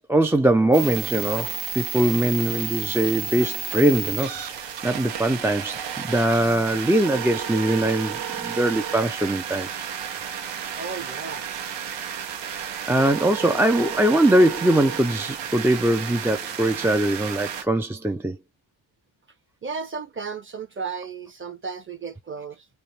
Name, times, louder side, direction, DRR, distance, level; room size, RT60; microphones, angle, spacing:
voice 1, 0.1-9.7 12.5-12.6 12.9-18.4, right 1 dB, 5° right, 0.4 m, -22 dB
sound 1, 0.7-17.6, right 8 dB, 65° right, 1.1 m, -32 dB
voice 2, 10.7-11.5 19.6-22.7, right 5 dB, 25° right, 0.9 m, -34 dB
3.2 x 2.2 x 4.1 m
cardioid pair, 135°, 46 cm